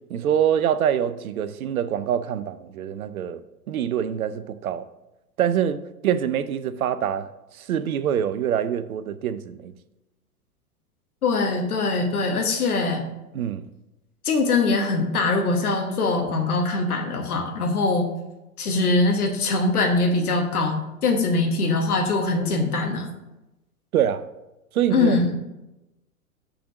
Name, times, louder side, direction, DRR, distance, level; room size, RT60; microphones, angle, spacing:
voice 1, 0.1-3.4 3.7-4.9 5.4-7.3 7.6-9.7 13.3-13.7 23.9-24.3 24.7-25.2, right 9 dB, 70° right, 0.6 m, -25 dB
voice 2, 11.2-13.1 14.2-18.1 18.6-23.1 24.9-25.3, left 3 dB, 75° left, 1.2 m, -22 dB
6.8 x 3.8 x 6.2 m
figure-of-eight pair, 100°, 45 cm